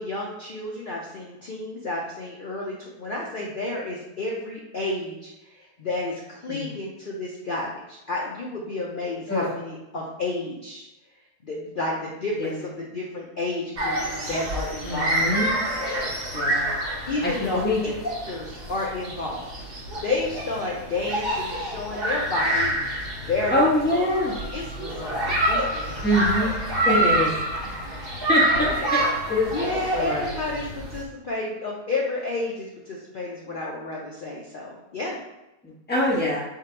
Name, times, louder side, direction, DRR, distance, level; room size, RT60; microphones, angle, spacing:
voice 1, 0.0-10.9 11.4-14.0 14.3-15.3 17.1-17.6 18.0-19.5 20.0-23.5 23.9-26.1 29.0-29.1 29.5-35.2, left 2 dB, 60° left, -3 dB, 0.5 m, -31 dB
sound 1, 13.8-31.0, right 1 dB, 45° right, 0.9 m, -27 dB
voice 2, 14.9-15.5 16.3-16.9 17.2-17.8 23.5-24.3 26.0-26.5 26.8-27.3 27.6-29.0 29.3-30.3 35.6-36.4, left 1 dB, 10° left, -4 dB, 0.7 m, -25 dB
3.7 x 2.7 x 4.4 m, 0.96 s
omnidirectional pair, 1.7 m